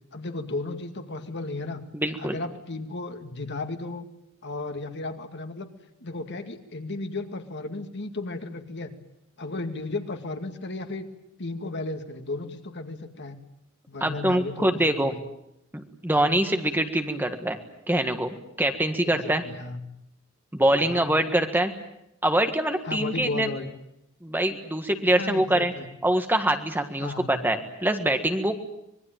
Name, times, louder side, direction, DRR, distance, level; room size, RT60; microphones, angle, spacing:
voice 1, 0.1-1.8 2.2-4.1 4.4-5.7 6.0-8.9 9.4-11.1 11.4-13.3 13.9-15.2 19.0-19.8 20.8-21.1 22.8-23.7 25.0-25.9 27.0-27.4, left 2 dB, 55° left, 6 dB, 2.2 m, -34 dB
voice 2, 1.9-2.3 14.0-15.1 15.7-17.6 17.9-19.4 20.5-21.7 22.2-23.5 24.2-25.7 26.0-28.6, right 1 dB, 10° right, 7 dB, 1.7 m, -24 dB
25.5 x 21.0 x 9.1 m, 0.81 s
head